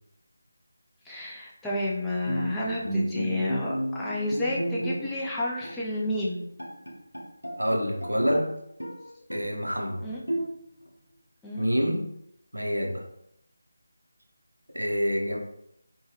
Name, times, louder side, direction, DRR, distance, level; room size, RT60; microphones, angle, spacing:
voice 1, 1.0-6.4 10.0-10.2 11.4-11.6, left 1 dB, 5° left, -7 dB, 0.4 m, -30 dB
Bowed string instrument, 2.3-5.3 5.6-5.8 6.3-6.4 6.6-8.5 8.8-9.6 10.3-10.9, right 1 dB, 85° left, 0.6 m, -33 dB
voice 2, 7.6-8.5 9.3-10.1 11.6-12.1 12.5-13.1 14.7-15.4, equal, 85° right, 2 dB, 0.6 m, -27 dB
3.3 x 2.2 x 2.8 m, 0.76 s
figure-of-eight pair, 160°, 0 cm